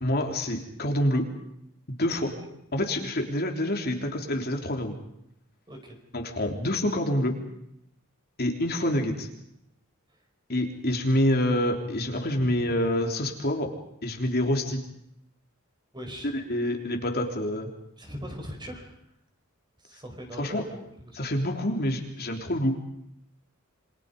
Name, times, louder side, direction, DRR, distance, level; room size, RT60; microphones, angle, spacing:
voice 1, 0.0-1.3 2.0-2.3 2.7-5.0 6.1-7.4 8.4-9.3 10.5-13.7 14.0-14.8 16.2-17.7 20.4-20.6 21.2-22.8, left 1 dB, 50° left, 2 dB, 3.5 m, -27 dB
voice 2, 2.2-2.6 5.7-6.0 9.0-9.1 10.1-10.2 15.9-16.3 18.0-19.0 19.8-21.2, equal, 20° right, 3 dB, 5.2 m, -41 dB
28.0 x 25.5 x 5.4 m, 0.77 s
head